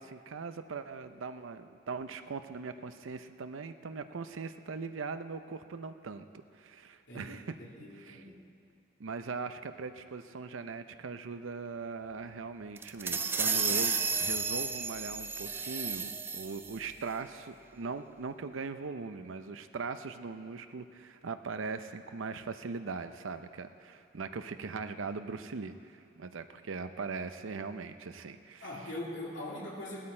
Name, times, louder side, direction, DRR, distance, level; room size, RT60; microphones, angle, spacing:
voice 1, 0.0-6.3 6.6-7.5 8.0-8.2 9.0-28.9, right 4 dB, 85° right, 10 dB, 0.6 m, -40 dB
voice 2, 7.1-7.4 7.7-8.4 28.6-30.0, left 1 dB, 75° left, -4 dB, 2.8 m, -41 dB
sound 1, 12.8-16.8, right 5 dB, 10° right, 0.3 m, -32 dB
17.0 x 12.5 x 4.4 m, 2.4 s
head